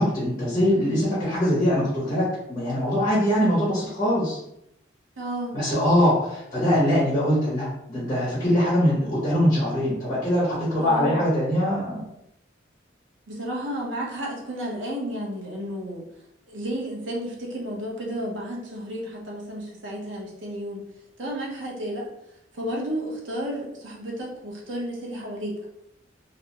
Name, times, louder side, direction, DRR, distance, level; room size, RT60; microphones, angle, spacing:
voice 1, 0.0-4.4 5.5-12.0, equal, 20° left, -7 dB, 0.7 m, -22 dB
voice 2, 5.2-5.6 10.8-11.2 13.3-16.1 16.5-20.9 21.2-22.1 22.5-25.6, equal, 85° right, -2 dB, 0.7 m, -32 dB
2.4 x 2.1 x 2.8 m, 0.81 s
head